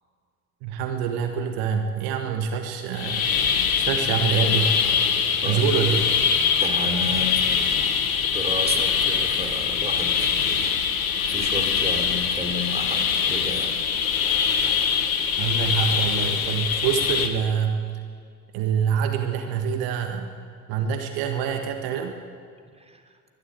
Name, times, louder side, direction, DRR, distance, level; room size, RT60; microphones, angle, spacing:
voice 1, 0.6-3.3 3.8-4.8 5.4-6.1 15.4-17.8 18.5-20.3 20.7-22.2, right 7 dB, 65° right, 5 dB, 1.7 m, -25 dB
sound 1, 2.9-17.3, left 7 dB, 80° left, 1.5 m, -23 dB
voice 2, 5.4-5.7 6.6-7.8 8.2-10.7 11.2-13.8 22.8-23.0, equal, 15° right, 4 dB, 3.3 m, -32 dB
21.0 x 12.5 x 9.7 m, 2.2 s
figure-of-eight pair, 55°, 40 cm